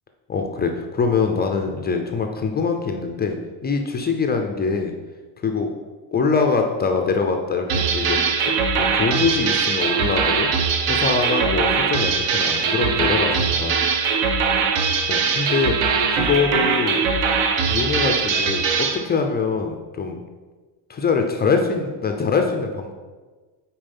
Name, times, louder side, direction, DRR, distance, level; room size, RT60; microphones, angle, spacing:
voice 1, 0.3-3.4 3.6-4.9 5.4-5.7 6.1-8.2 8.8-10.5 10.9-13.8 15.1-15.8 16.1-17.0 17.6-20.2 20.9-22.9, left 4 dB, 20° left, 4 dB, 0.4 m, -23 dB
sound 1, 7.7-19.0, right 5 dB, 65° right, 1.1 m, -21 dB
9.0 x 4.3 x 5.3 m, 1.3 s
cardioid pair, 175°, 48 cm